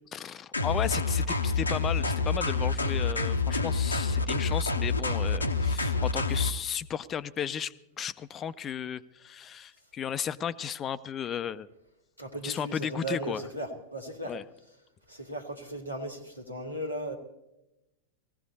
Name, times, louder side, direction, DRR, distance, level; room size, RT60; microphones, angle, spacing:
voice 1, 0.1-11.7 12.4-13.5 14.2-14.4, left 8 dB, 25° left, 16 dB, 0.5 m, -34 dB
sound 1, 0.5-6.5, left 4 dB, 80° left, 0.8 m, -27 dB
voice 2, 12.2-14.3 15.1-17.2, right 1 dB, 90° right, 2 dB, 1.8 m, -36 dB
18.5 x 15.5 x 4.1 m, 0.92 s
figure-of-eight pair, 90°, 0 cm